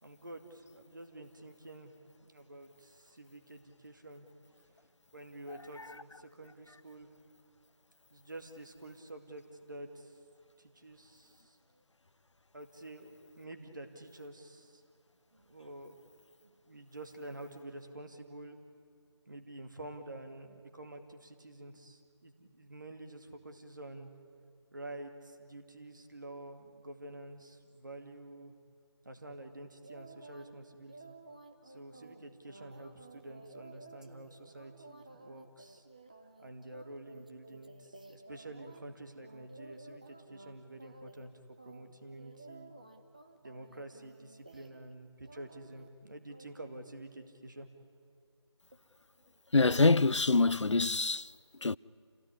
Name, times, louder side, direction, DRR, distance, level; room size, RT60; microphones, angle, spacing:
voice 1, 0.0-1.9 2.2-4.3 5.1-7.2 8.1-10.1 10.6-11.6 12.5-14.8 15.3-16.0 16.7-18.6 19.3-24.1 24.7-28.5 29.0-31.1 31.6-35.8 36.4-42.7 43.4-47.7, right 1 dB, 45° right, 2.4 m, -48 dB
sound 1, 29.8-30.5 30.9-38.8 39.2-40.5 40.8-41.3 41.6-44.9 45.2-45.9 46.3-46.5, right 2 dB, 15° right, 0.8 m, -54 dB
voice 2, 49.5-51.3 51.6-51.8, left 3 dB, 85° left, 0.5 m, -25 dB
28.0 x 17.5 x 9.8 m
figure-of-eight pair, 170°, 15 cm